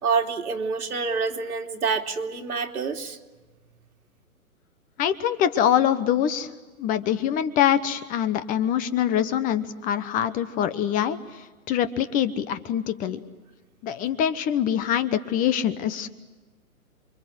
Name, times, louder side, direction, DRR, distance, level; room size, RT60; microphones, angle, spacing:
voice 1, 0.0-3.2, right 5 dB, 80° right, 2 dB, 3.2 m, -27 dB
voice 2, 5.0-6.5 6.8-11.2 11.7-13.2 13.8-16.1, left 10 dB, 20° left, 12 dB, 1.0 m, -24 dB
28.5 x 24.0 x 8.0 m, 1.3 s
hypercardioid pair, 135°, 44 cm